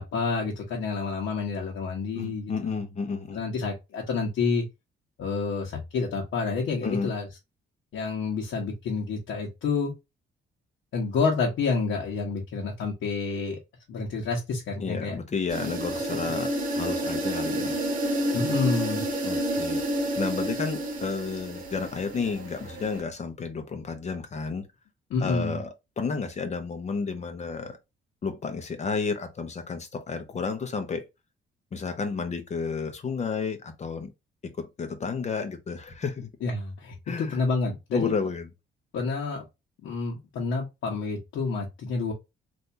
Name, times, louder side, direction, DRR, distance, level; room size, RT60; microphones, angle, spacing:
voice 1, 0.0-2.8 3.3-4.6 5.2-7.3 7.9-9.9 10.9-13.6 13.9-15.1 16.1-16.2 18.3-19.0 25.1-25.6 36.4-38.1 38.9-39.4 39.8-42.1, left 4 dB, 80° left, 1.1 m, -29 dB
voice 2, 2.1-3.4 6.8-7.1 14.8-17.8 19.2-19.8 20.2-24.6 25.2-25.7 26.0-27.8 28.2-31.0 31.7-34.1 34.4-36.3 37.1-37.4 37.9-38.5, left 5 dB, 35° left, 0.9 m, -31 dB
sound 1, 15.5-23.0, right 1 dB, 45° right, 1.3 m, -30 dB
3.4 x 2.6 x 2.7 m
cardioid pair, 130°, 20 cm